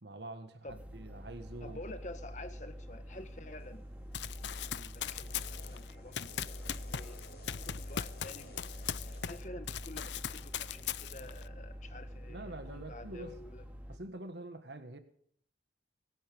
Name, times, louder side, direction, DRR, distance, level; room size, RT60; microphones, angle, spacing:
voice 1, 0.0-1.8 12.3-13.4 13.9-15.0, right 2 dB, 80° right, 1.6 m, -45 dB
sound 1, 0.7-14.0, equal, 10° right, 2.1 m, -47 dB
voice 2, 1.6-3.8 4.6-6.6 6.9-8.6 8.9-13.6, left 2 dB, 45° left, 1.5 m, -49 dB
sound 2, 3.6-9.4, left 2 dB, 70° left, 6.3 m, -52 dB
Run, 4.1-9.4 9.7-11.4, left 9 dB, 85° left, 0.6 m, -39 dB
23.5 x 11.0 x 3.6 m
head